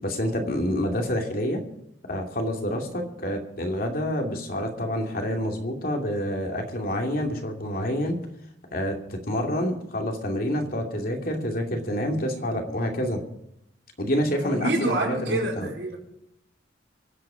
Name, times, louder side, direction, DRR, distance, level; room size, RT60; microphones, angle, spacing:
voice 1, 0.0-1.6 2.1-8.2 8.7-13.2 14.0-15.7, equal, 55° left, 3 dB, 2.7 m, -28 dB
voice 2, 14.3-16.0, right 2 dB, 75° right, -2 dB, 4.9 m, -27 dB
24.5 x 8.6 x 5.1 m, 0.79 s
head